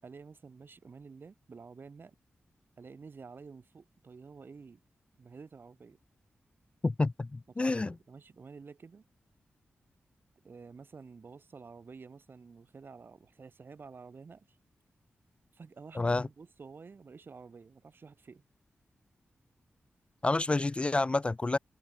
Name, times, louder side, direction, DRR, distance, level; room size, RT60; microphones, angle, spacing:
voice 1, 0.0-2.1 2.8-4.8 5.2-6.0 7.6-9.0 10.4-14.6 15.5-18.4, right 5 dB, 55° right, 6.1 m, -50 dB
voice 2, 6.8-7.9 15.9-16.3 20.2-21.6, left 2 dB, 25° left, 0.4 m, -29 dB
cardioid pair, 75°, 4 cm